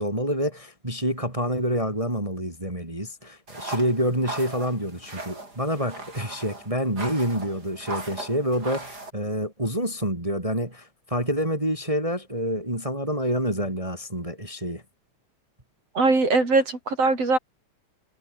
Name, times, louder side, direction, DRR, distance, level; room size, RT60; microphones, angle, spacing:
voice 1, 0.0-14.8, equal, 10° right, 4.0 m, -27 dB
sound 1, 3.5-9.1, right 2 dB, 30° right, 7.1 m, -38 dB
voice 2, 15.9-17.4, right 3 dB, 55° right, 8.0 m, -21 dB
omnidirectional pair, 3.4 m